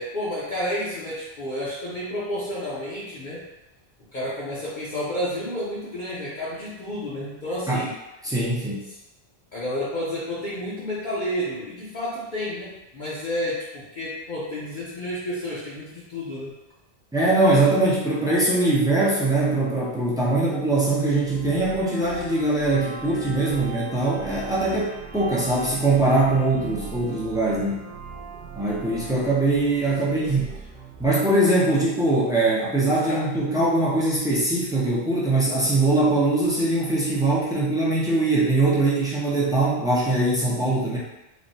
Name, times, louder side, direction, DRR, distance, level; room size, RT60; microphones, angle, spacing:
voice 1, 0.0-3.4 4.1-7.9 8.9-9.0 9.5-16.6 30.0-30.5 32.9-33.2, left 1 dB, 50° left, -9 dB, 0.7 m, -31 dB
voice 2, 8.2-8.8 17.1-27.8 28.6-30.5 31.0-41.0, right 2 dB, 5° right, -7 dB, 0.4 m, -22 dB
sound 1, 21.2-31.1, right 4 dB, 85° right, 0.9 m, -39 dB
3.4 x 2.1 x 2.6 m, 0.96 s
omnidirectional pair, 1.1 m